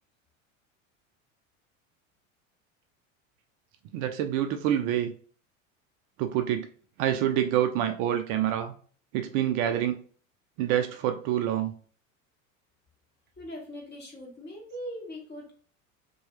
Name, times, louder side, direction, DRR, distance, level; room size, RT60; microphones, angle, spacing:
voice 1, 3.9-5.1 6.2-6.7 7.0-8.7 9.1-10.0 10.6-11.7, right 11 dB, 55° right, 7 dB, 0.5 m, -27 dB
voice 2, 13.4-15.6, equal, 25° left, -1 dB, 1.4 m, -41 dB
2.7 x 2.3 x 3.1 m, 0.43 s
hypercardioid pair, 85°, 40 cm